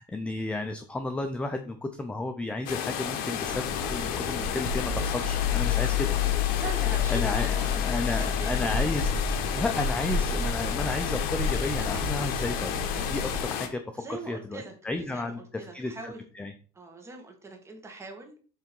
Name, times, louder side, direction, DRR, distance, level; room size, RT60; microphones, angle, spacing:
voice 1, 0.0-6.1 7.1-9.1 9.5-15.4 15.7-16.5, left 2 dB, 5° left, 6 dB, 0.5 m, -33 dB
sound 1, 2.7-13.7, left 8 dB, 65° left, 1.2 m, -32 dB
sound 2, 3.4-13.4, left 6 dB, 50° left, 3.7 m, -30 dB
voice 2, 6.6-8.7 14.0-16.2 16.7-18.4, right 3 dB, 15° right, 3 dB, 1.8 m, -42 dB
Tearing, 8.9-9.3 10.2-10.3 10.6-10.7 11.3-13.3, right 3 dB, 70° right, 3.2 m, -45 dB
7.4 x 3.5 x 5.3 m, 0.40 s
cardioid pair, 145°, 16 cm